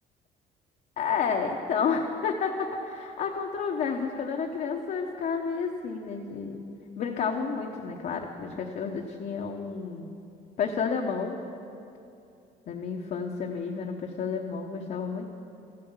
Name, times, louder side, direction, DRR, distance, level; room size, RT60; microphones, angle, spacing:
voice 1, 1.0-6.6 7.0-10.1 10.6-11.4 12.7-15.3, left 5 dB, 55° left, 1 dB, 0.9 m, -30 dB
14.0 x 7.7 x 7.2 m, 2.7 s
cardioid pair, 110°, 17 cm